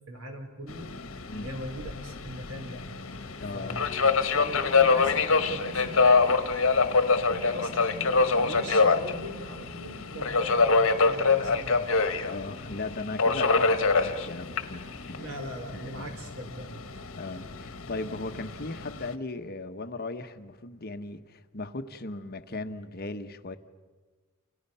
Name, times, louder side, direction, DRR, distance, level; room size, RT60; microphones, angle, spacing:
voice 1, 0.1-0.9 1.4-2.9 3.5-3.9 4.3-6.3 7.3-11.8 15.2-17.0, equal, 80° right, 4 dB, 4.2 m, -40 dB
Subway metro underground, 0.7-19.1, left 4 dB, 65° left, 1.4 m, -26 dB
voice 2, 3.4-3.8 12.2-15.3 15.7-16.1 17.2-23.6, left 3 dB, 45° left, 8 dB, 1.1 m, -37 dB
29.5 x 29.0 x 5.6 m, 1.4 s
head